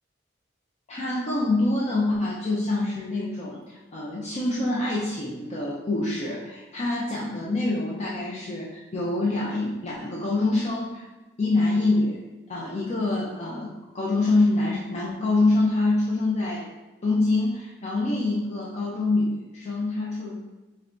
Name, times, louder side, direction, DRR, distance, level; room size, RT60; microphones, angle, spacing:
voice 1, 0.9-11.1 11.4-12.2 12.5-16.7 17.0-20.5, left 2 dB, 40° left, -5 dB, 0.5 m, -25 dB
4.2 x 3.3 x 2.5 m, 1.1 s
head